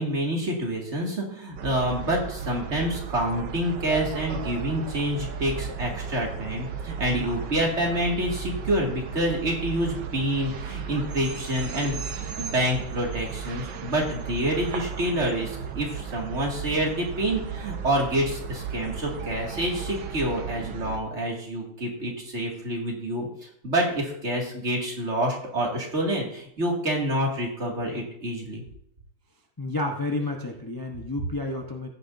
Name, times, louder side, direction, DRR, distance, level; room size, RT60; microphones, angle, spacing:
voice 1, 0.0-12.1 12.4-23.3 23.6-28.6, right 1 dB, 35° right, -1 dB, 2.5 m, -27 dB
sound 1, 1.6-21.0, right 7 dB, 65° right, 1.5 m, -35 dB
voice 2, 7.0-7.4 29.6-31.9, left 2 dB, 25° left, 1 dB, 0.4 m, -31 dB
15.0 x 9.8 x 2.7 m, 0.70 s
omnidirectional pair, 2.2 m